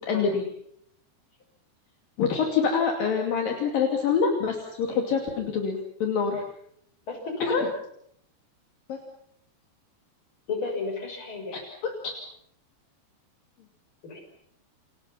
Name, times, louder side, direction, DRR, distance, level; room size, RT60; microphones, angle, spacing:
voice 1, 0.1-0.4 2.2-6.4 7.5-7.7 8.9-9.0 11.5-11.9, left 6 dB, 60° left, 2 dB, 4.2 m, -26 dB
voice 2, 7.1-7.6 10.5-11.5 14.0-14.2, left 4 dB, 30° left, 3 dB, 6.6 m, -31 dB
30.0 x 26.0 x 5.8 m, 0.70 s
omnidirectional pair, 4.6 m